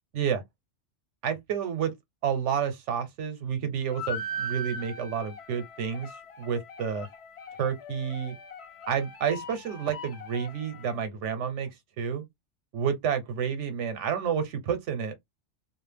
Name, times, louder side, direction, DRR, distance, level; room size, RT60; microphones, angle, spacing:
voice 1, 1.2-1.9 2.2-6.1 6.4-7.1 7.6-8.4 8.9-11.7 12.0-12.2 12.7-15.1, right 7 dB, 85° right, 1.0 m, -30 dB
sound 1, 3.9-11.0, equal, 65° left, 0.9 m, -40 dB
2.4 x 2.0 x 3.2 m
omnidirectional pair, 1.2 m